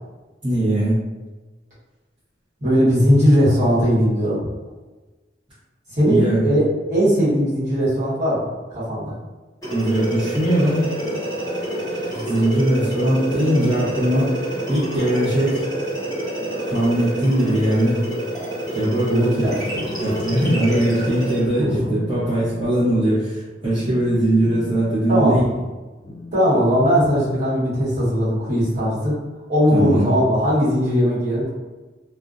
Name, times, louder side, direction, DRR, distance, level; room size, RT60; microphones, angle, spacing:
voice 1, 0.4-1.0 6.1-6.5 9.7-10.9 12.1-14.3 14.7-15.6 16.7-18.0 18.7-19.5 20.0-25.5 29.7-30.1, right 1 dB, 25° right, -14 dB, 0.7 m, -20 dB
voice 2, 2.6-4.4 5.9-8.5 8.7-9.1 19.1-19.8 20.5-20.6 21.7-21.8 25.1-25.3 26.3-29.1 29.5-31.5, equal, 40° right, -11 dB, 1.1 m, -19 dB
sound 1, 9.6-21.5, right 1 dB, 20° left, 0.9 m, -27 dB
Telephone, 19.7-20.8 21.1-21.4 21.7-27.8, left 3 dB, 45° left, 0.4 m, -39 dB
2.4 x 2.1 x 2.4 m, 1.2 s
head